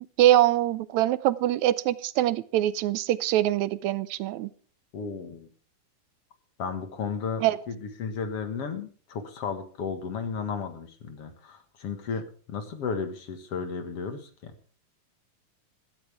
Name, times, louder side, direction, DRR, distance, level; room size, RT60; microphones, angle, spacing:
voice 1, 0.2-4.5 7.4-7.6, right 13 dB, 75° right, 17 dB, 1.9 m, -23 dB
voice 2, 4.9-5.5 6.6-14.5, left 5 dB, 55° left, 8 dB, 2.4 m, -34 dB
15.5 x 13.5 x 3.5 m, 0.41 s
omnidirectional pair, 3.6 m